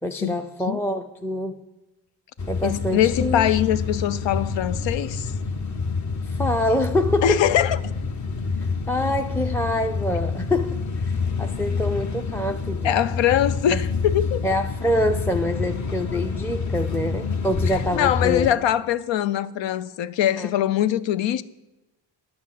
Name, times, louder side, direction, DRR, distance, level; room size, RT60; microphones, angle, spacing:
voice 1, 0.0-1.6 2.5-3.5 6.2-7.5 8.6-13.0 13.7-13.9 14.4-18.5 20.4-20.5, left 1 dB, 5° left, 0.5 m, -26 dB
sound 1, 2.4-18.5, left 4 dB, 40° left, 0.9 m, -27 dB
voice 2, 2.6-5.3 7.2-7.8 12.8-14.4 17.9-21.4, left 11 dB, 80° left, 0.6 m, -22 dB
10.5 x 6.2 x 7.5 m
cardioid pair, 65°, 44 cm